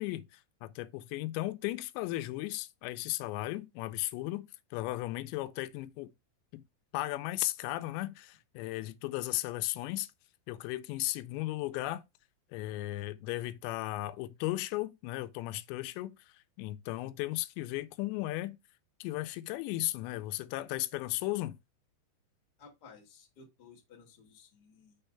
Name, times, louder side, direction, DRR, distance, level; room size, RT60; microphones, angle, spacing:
voice 1, 0.0-6.1 6.5-6.6 6.9-10.1 10.5-12.0 12.5-18.6 19.0-21.6, left 17 dB, 85° left, 2.8 m, -36 dB
voice 2, 22.6-25.0, left 5 dB, 60° left, 1.0 m, -56 dB
6.4 x 3.3 x 5.5 m
omnidirectional pair, 5.1 m